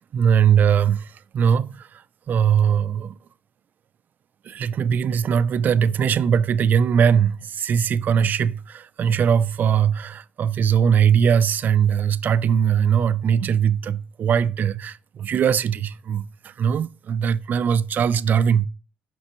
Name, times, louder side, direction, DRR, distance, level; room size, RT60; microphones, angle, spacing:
voice 1, 0.1-2.0 2.3-3.1 4.5-18.7, right 8 dB, 55° right, 0.3 m, -20 dB
6.0 x 5.5 x 2.9 m
cardioid pair, 95°, 4 cm